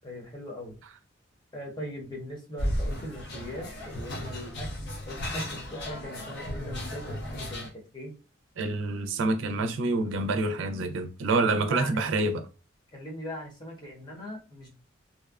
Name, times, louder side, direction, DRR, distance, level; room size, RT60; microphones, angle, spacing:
voice 1, 0.0-0.8 1.5-4.7 5.1-8.1 11.3-12.0 12.9-14.7, left 1 dB, 25° left, 0.8 m, -40 dB
sound 1, 2.6-7.7, equal, 55° left, 0.6 m, -34 dB
Drum, 5.3-8.1, right 1 dB, 15° right, 0.7 m, -49 dB
voice 2, 8.6-12.5, right 2 dB, 75° right, 0.4 m, -27 dB
2.6 x 2.1 x 2.3 m
head